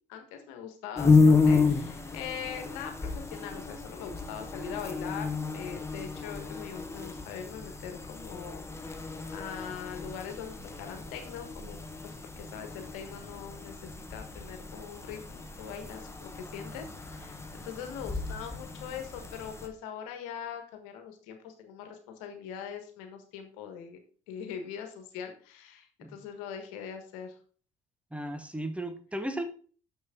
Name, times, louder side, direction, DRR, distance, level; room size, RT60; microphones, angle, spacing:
voice 1, 0.1-24.0 24.3-27.3, left 8 dB, 85° left, 6 dB, 1.4 m, -42 dB
sound 1, 1.0-19.7, left 4 dB, 15° left, 1.3 m, -31 dB
voice 2, 28.1-29.5, right 1 dB, 10° right, 8 dB, 1.2 m, -35 dB
6.7 x 6.3 x 3.7 m, 0.42 s
supercardioid pair, 65°, 16 cm